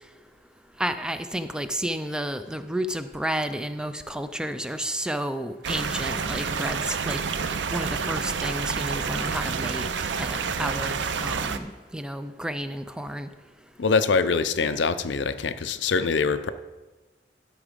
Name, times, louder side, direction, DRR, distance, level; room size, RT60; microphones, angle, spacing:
voice 1, 0.8-7.2 7.7-9.9 10.2-13.3, right 1 dB, 5° right, 10 dB, 0.4 m, -31 dB
sound 1, 5.6-11.6, right 5 dB, 80° right, 0.6 m, -29 dB
voice 2, 13.8-16.5, left 5 dB, 85° left, 12 dB, 0.5 m, -24 dB
12.0 x 5.9 x 5.2 m, 1.2 s
head